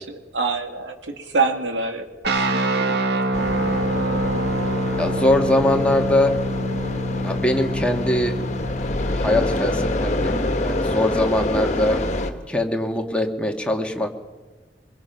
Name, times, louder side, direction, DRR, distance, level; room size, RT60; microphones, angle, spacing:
voice 1, 0.0-2.1 2.5-3.2, right 3 dB, 90° right, 4 dB, 2.3 m, -26 dB
sound 1, 2.2-11.1, right 1 dB, 70° right, 1.7 m, -26 dB
sound 2, 3.3-12.3, left 2 dB, 45° left, 1.7 m, -26 dB
voice 2, 5.0-6.3 7.2-8.3 9.1-12.0 12.5-14.1, left 1 dB, 5° left, 2 dB, 1.8 m, -22 dB
23.0 x 22.0 x 5.9 m, 1.3 s
head